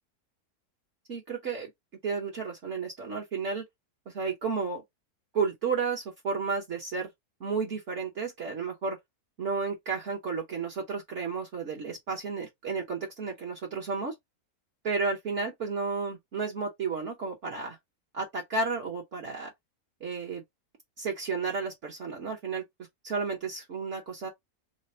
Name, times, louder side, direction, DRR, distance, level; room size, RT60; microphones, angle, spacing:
voice 1, 1.1-1.7 2.0-3.6 4.1-4.8 5.3-7.1 7.4-9.0 9.4-14.1 14.8-17.8 18.1-19.5 20.0-20.4 21.0-22.6 23.0-24.3, right 4 dB, 55° right, 1.2 m, -32 dB
3.3 x 2.1 x 4.2 m
omnidirectional pair, 1.6 m